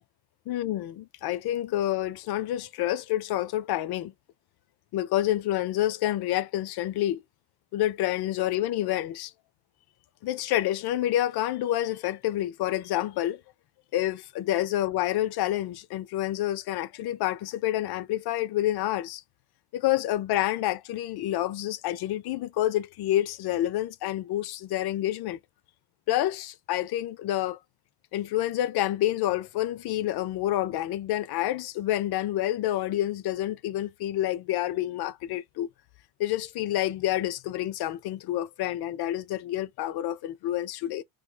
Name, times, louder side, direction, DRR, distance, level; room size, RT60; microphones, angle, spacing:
voice 1, 0.5-4.1 4.9-7.2 7.7-9.3 10.2-13.4 13.9-19.2 19.7-25.4 26.1-27.6 28.1-35.7 36.2-41.0, left 13 dB, 55° left, 0.5 m, -28 dB
3.1 x 2.3 x 3.3 m
cardioid pair, 160°, 47 cm